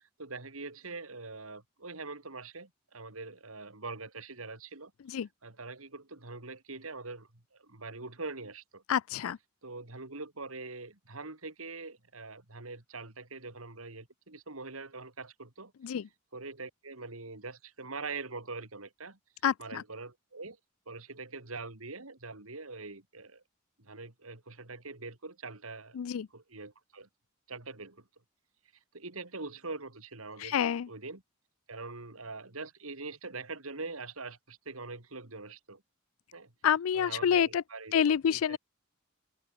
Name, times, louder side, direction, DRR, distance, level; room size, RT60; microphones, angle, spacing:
voice 1, 0.2-4.9 5.4-8.8 9.6-15.7 16.3-19.2 19.6-20.6 20.9-23.4 23.8-26.0 26.3-27.1 27.5-28.0 28.9-30.6 30.9-31.2 31.7-35.8 36.3-36.5 36.9-38.0 38.3-38.6, right 3 dB, 85° right, 3.3 m, -43 dB
voice 2, 8.9-9.4 15.8-16.1 19.4-19.8 25.9-26.3 30.4-30.9 36.6-37.6 37.9-38.6, left 8 dB, 80° left, 0.4 m, -28 dB
head